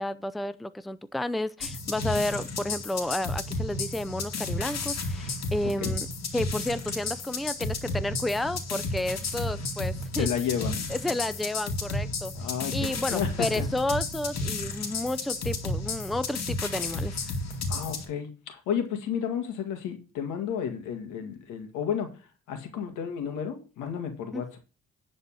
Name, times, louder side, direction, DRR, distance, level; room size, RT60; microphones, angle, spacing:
voice 1, 0.0-6.1 6.3-10.3 10.9-12.3 12.7-17.2 24.3-24.4, left 1 dB, ahead, 14 dB, 0.6 m, -31 dB
sound 1, 1.6-18.1, left 3 dB, 60° left, 2.4 m, -32 dB
voice 2, 10.1-10.8 12.4-13.7 17.7-22.2 22.5-24.6, left 8 dB, 90° left, 6 dB, 2.0 m, -32 dB
10.0 x 4.3 x 6.2 m, 0.35 s
supercardioid pair, 70°, 29 cm